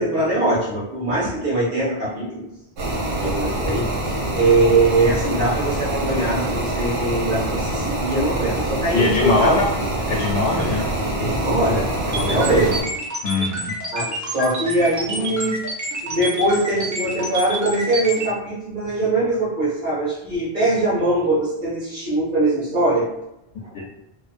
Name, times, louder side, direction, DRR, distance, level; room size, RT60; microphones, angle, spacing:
voice 1, 0.0-2.4 3.1-9.6 11.2-12.8 13.9-15.6 16.0-23.1 23.6-23.7, right 2 dB, 55° right, -9 dB, 1.0 m, -22 dB
sound 1, 2.8-12.8, right 1 dB, 80° right, 0.9 m, -25 dB
voice 2, 8.9-9.7 10.1-10.9 12.5-12.7 13.2-13.7, left 2 dB, 90° left, -3 dB, 0.8 m, -21 dB
sound 2, 12.1-18.2, right 1 dB, 30° right, 0.3 m, -28 dB
2.5 x 2.1 x 2.4 m, 0.86 s
omnidirectional pair, 1.1 m